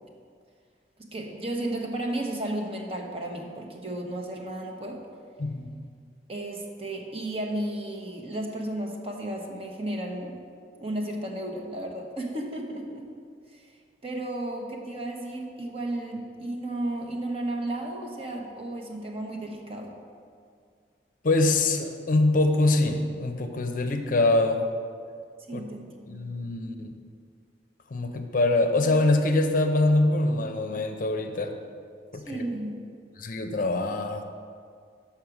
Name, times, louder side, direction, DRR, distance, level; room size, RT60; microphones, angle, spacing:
voice 1, 1.0-5.0 6.3-10.4 10.8-13.0 13.5-13.7 14.0-19.9 25.5-26.1 32.1-32.8, right 1 dB, 35° right, 1 dB, 0.9 m, -33 dB
voice 2, 5.4-5.7 21.2-24.6 25.5-25.6 26.1-26.9 27.9-31.5 32.1-32.4 33.2-34.2, left 2 dB, 50° left, 6 dB, 0.6 m, -24 dB
6.5 x 5.8 x 5.9 m, 2.1 s
head